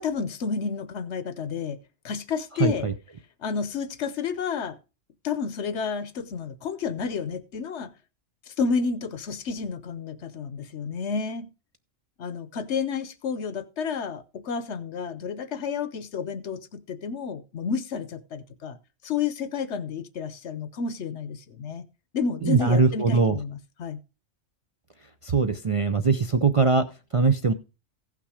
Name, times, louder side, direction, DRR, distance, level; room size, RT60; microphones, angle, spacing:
voice 1, 0.0-1.8 2.0-2.9 3.4-4.8 5.2-7.9 8.5-11.5 12.2-18.8 19.0-21.8 22.1-24.0, left 5 dB, 70° left, 1.1 m, -30 dB
voice 2, 2.6-2.9 22.4-23.4 25.2-27.5, right 4 dB, 40° right, 0.5 m, -22 dB
15.5 x 5.9 x 4.9 m
omnidirectional pair, 1.2 m